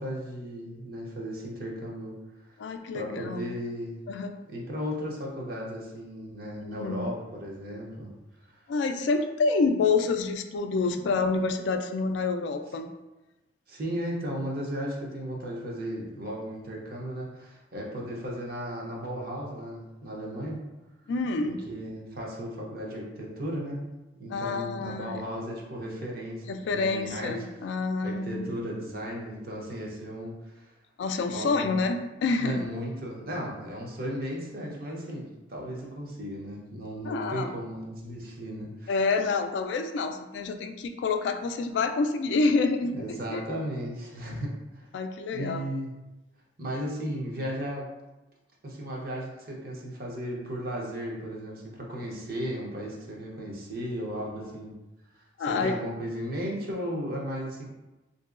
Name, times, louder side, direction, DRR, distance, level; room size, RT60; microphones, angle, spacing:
voice 1, 0.0-2.1 2.9-4.0 4.5-8.1 8.4-8.5 13.7-20.6 21.4-23.8 24.2-27.3 28.0-30.7 31.3-31.8 32.4-39.0 42.9-44.9 45.3-45.9 46.6-47.9 48.6-54.8 55.2-57.6, equal, 50° right, -2 dB, 0.7 m, -35 dB
voice 2, 2.6-3.5 4.1-4.3 6.6-7.1 8.7-12.9 21.1-21.6 24.3-25.1 26.5-28.5 31.0-32.0 32.2-32.6 37.0-37.5 38.9-42.9 43.3-43.4 44.9-45.6 55.4-55.7, left 4 dB, 70° left, 7 dB, 0.3 m, -27 dB
3.7 x 2.7 x 2.4 m, 1.0 s
head